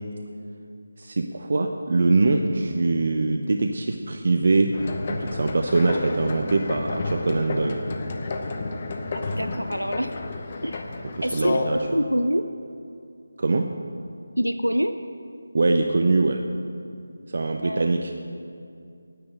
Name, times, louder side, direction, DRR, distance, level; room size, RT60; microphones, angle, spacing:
voice 1, 1.0-4.7 5.1-7.8 11.2-11.8 13.4-13.7 15.5-16.4 17.3-18.1, right 3 dB, 45° right, 4 dB, 0.6 m, -23 dB
sound 1, 4.7-11.9, left 3 dB, 30° left, 0.8 m, -31 dB
voice 2, 9.1-10.1 10.6-10.8 11.2-11.6 11.9-12.4 14.4-15.0 17.6-17.9, equal, 90° right, 9 dB, 0.5 m, -25 dB
9.9 x 8.7 x 7.6 m, 2.5 s
figure-of-eight pair, 160°, 0 cm